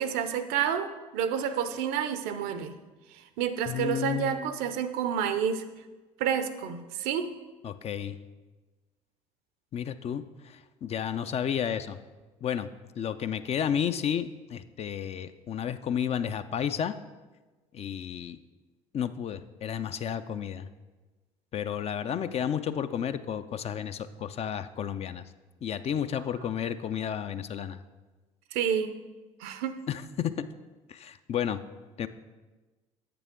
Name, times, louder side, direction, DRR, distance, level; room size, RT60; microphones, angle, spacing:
voice 1, 0.0-2.8 3.1-5.7 6.2-7.3 26.1-26.2 28.5-29.0 29.4-29.8, right 8 dB, 65° right, 11 dB, 0.6 m, -29 dB
voice 2, 3.7-4.5 7.6-8.2 9.7-12.0 12.4-12.7 13.0-17.0 17.7-18.4 18.9-20.7 21.5-25.2 25.6-27.8 29.9-30.4 30.9-31.6 32.0-32.1, left 8 dB, 40° left, 12 dB, 0.4 m, -32 dB
8.0 x 6.8 x 3.7 m, 1.2 s
hypercardioid pair, 55°, 17 cm